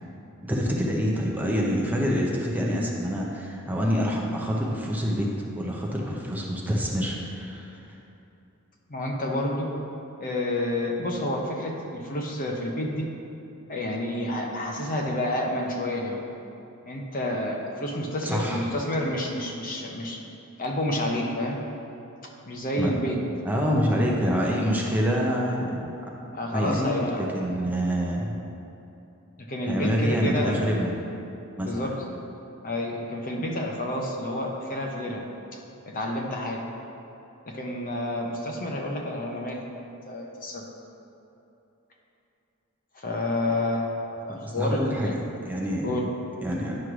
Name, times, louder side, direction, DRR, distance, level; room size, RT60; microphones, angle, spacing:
voice 1, 0.5-7.8 18.2-18.7 22.8-22.9 23.4-25.8 26.5-26.9 27.3-28.3 29.7-30.9 31.6-31.9 44.4-45.1 45.4-45.9 46.4-46.7, equal, 10° right, -3 dB, 0.7 m, -26 dB
voice 2, 8.9-9.7 10.2-13.1 13.7-16.2 16.9-20.2 20.6-21.6 22.4-23.2 26.3-27.6 29.5-30.6 31.6-31.9 32.6-35.2 35.5-36.6 37.5-39.6 40.1-40.6 42.9-45.1 45.8-46.0, left 1 dB, 40° left, 0 dB, 0.8 m, -29 dB
9.6 x 3.2 x 6.1 m, 2.9 s
head